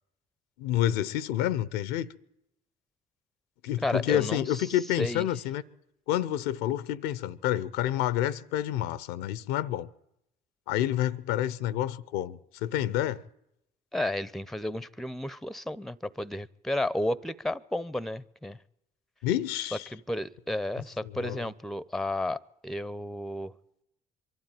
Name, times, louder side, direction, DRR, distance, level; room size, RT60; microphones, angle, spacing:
voice 1, 0.6-2.1 3.6-5.6 6.1-9.9 10.7-13.2 19.2-19.9 21.0-21.5, left 12 dB, 80° left, 0.7 m, -29 dB
voice 2, 3.8-4.6 5.0-5.3 13.9-18.6 19.9-23.5, left 1 dB, ahead, 0.8 m, -32 dB
23.0 x 12.5 x 9.0 m
hypercardioid pair, 55°, 19 cm